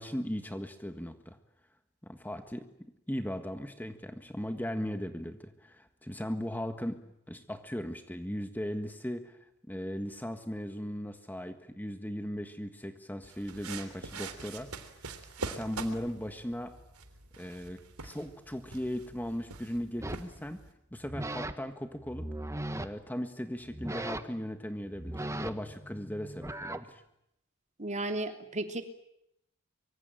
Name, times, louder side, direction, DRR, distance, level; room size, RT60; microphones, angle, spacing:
voice 1, 0.0-1.4 2.0-9.4 9.7-14.7 15.4-16.7 17.4-20.6 20.9-22.3 22.8-27.0, equal, 10° left, 7 dB, 1.6 m, -38 dB
sound 1, 13.2-20.7, right 4 dB, 75° right, 3.3 m, -44 dB
sound 2, 20.0-20.3 21.0-21.5 22.0-22.9 23.6-24.4 24.9-26.8, right 1 dB, 15° right, 1.5 m, -38 dB
voice 2, 27.8-28.8, right 2 dB, 35° right, 6 dB, 3.0 m, -34 dB
25.0 x 25.0 x 9.1 m, 0.79 s
head